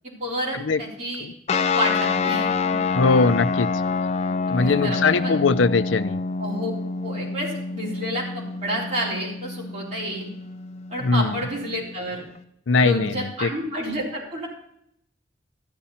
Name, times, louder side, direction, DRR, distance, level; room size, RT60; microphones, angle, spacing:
voice 1, 0.0-1.3 1.7-2.8 4.5-5.4 6.4-6.7 7.0-10.3 10.9-12.2 12.8-14.5, equal, 35° right, -6 dB, 4.3 m, -30 dB
sound 1, 1.5-12.4, left 4 dB, 35° left, 0.4 m, -27 dB
voice 2, 2.9-3.7 4.5-6.2 11.0-11.4 12.7-13.5, left 4 dB, 90° left, 14 dB, 0.5 m, -21 dB
13.0 x 10.5 x 4.3 m, 0.73 s
head